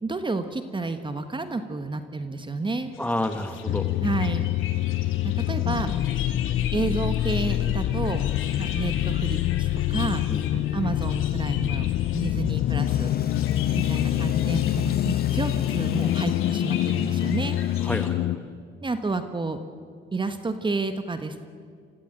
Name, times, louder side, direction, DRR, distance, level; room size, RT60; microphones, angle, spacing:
voice 1, 0.0-2.9 4.0-4.5 5.2-5.9 6.7-8.2 8.6-10.2 10.7-11.9 12.1-13.1 13.7-17.6 18.8-19.6 20.1-21.4, right 3 dB, 25° right, 9 dB, 1.3 m, -30 dB
sound 1, 2.9-18.1, left 8 dB, 90° left, 2.3 m, -41 dB
voice 2, 3.0-3.9 10.3-10.9 17.8-18.5, left 1 dB, 5° left, 8 dB, 1.6 m, -30 dB
sound 2, 3.7-18.4, left 13 dB, 70° left, 0.6 m, -25 dB
sound 3, 12.8-18.1, left 6 dB, 50° left, 1.3 m, -35 dB
26.0 x 15.0 x 9.1 m, 2.2 s
cardioid pair, 90°, 20 cm